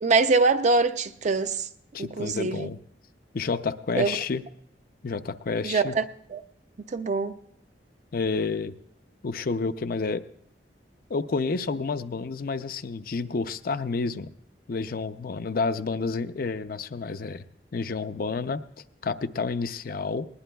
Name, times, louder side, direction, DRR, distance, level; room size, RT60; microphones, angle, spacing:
voice 1, 0.0-1.7 2.0-2.7 3.9-4.2 5.6-6.4 6.9-7.4, right 3 dB, 40° right, 0.5 m, -24 dB
voice 2, 1.9-2.8 3.3-4.4 5.0-6.0 8.1-8.7 9.2-10.2 11.1-14.3 14.7-17.4 17.7-18.6 19.0-20.3, left 4 dB, 55° left, 0.5 m, -29 dB
20.0 x 19.5 x 2.3 m
head